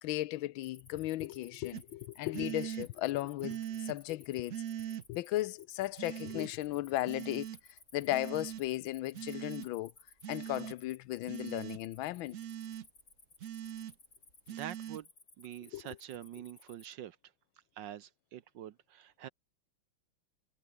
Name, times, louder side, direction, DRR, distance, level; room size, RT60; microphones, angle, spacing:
voice 1, 0.0-3.6 3.9-4.5 5.1-7.5 7.9-9.9 10.3-12.4 15.7-15.8, left 16 dB, 75° left, 1.4 m, -35 dB
Cricket, 0.6-16.9, left 3 dB, 45° left, 4.4 m, -60 dB
sound 1, 1.7-1.8 2.3-2.9 3.4-4.0 4.5-5.0 6.0-6.5 7.1-7.6 8.1-8.6 9.1-9.7 10.2-10.8 11.3-11.8 12.3-12.9 13.4-13.9 14.5-15.0, right 10 dB, 80° right, 0.7 m, -41 dB
voice 2, 14.5-15.1 15.4-17.2 17.7-19.3, right 11 dB, 65° right, 1.3 m, -45 dB
omnidirectional pair, 2.4 m